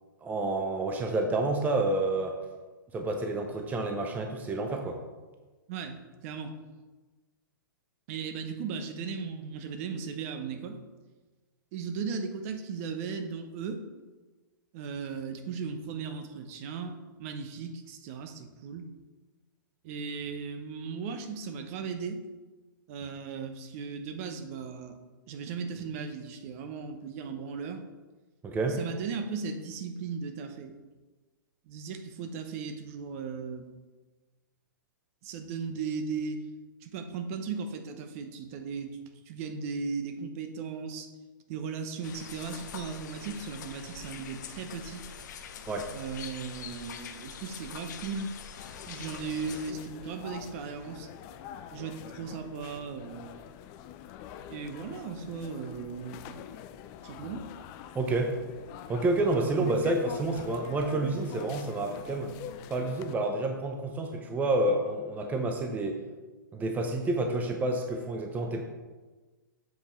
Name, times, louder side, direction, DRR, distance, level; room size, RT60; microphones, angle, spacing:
voice 1, 0.2-2.3 2.9-5.0 28.4-28.8 45.7-45.9 57.9-58.4 58.9-62.4 62.7-66.0 66.5-68.6, right 2 dB, 15° right, 3 dB, 0.7 m, -29 dB
voice 2, 5.7-6.5 8.1-10.8 11.7-13.8 14.7-18.9 19.8-22.2 22.9-24.9 25.3-27.8 28.7-30.7 31.7-33.7 35.2-36.5 36.8-39.0 39.3-41.1 41.5-45.0 45.9-48.3 48.9-51.1 51.7-53.3 54.5-56.4 57.0-57.5, right 5 dB, 40° right, 6 dB, 0.9 m, -37 dB
sound 1, 42.0-49.7, left 7 dB, 55° left, 0.8 m, -44 dB
sound 2, 48.6-63.1, left 9 dB, 35° left, 0.5 m, -45 dB
7.8 x 5.4 x 4.4 m, 1.3 s
figure-of-eight pair, 115°, 11 cm